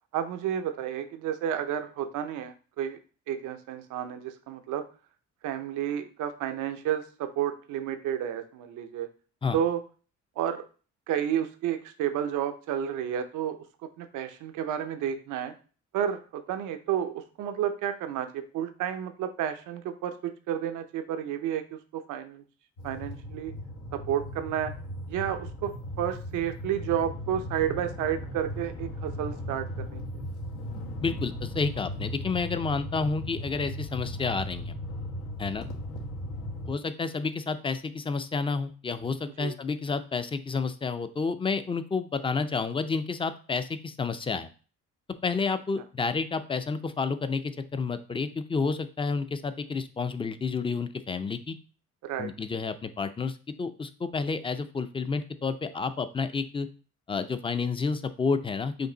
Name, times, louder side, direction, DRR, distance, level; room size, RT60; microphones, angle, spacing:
voice 1, 0.1-3.0 3.3-4.8 5.4-9.1 9.5-9.8 10.4-10.6 11.1-15.5 15.9-22.4 22.8-23.5 23.9-24.7 25.1-30.0 39.4-39.5 52.0-52.3, right 10 dB, 90° right, 8 dB, 0.6 m, -31 dB
sound 1, 22.8-36.7, left 1 dB, 85° left, 1.0 m, -37 dB
voice 2, 31.0-34.7 35.4-35.7 36.7-44.5 45.2-51.6 52.2-56.7 57.1-58.9, left 4 dB, 20° left, 11 dB, 0.4 m, -30 dB
5.2 x 2.6 x 3.8 m, 0.38 s
cardioid pair, 90°, 30 cm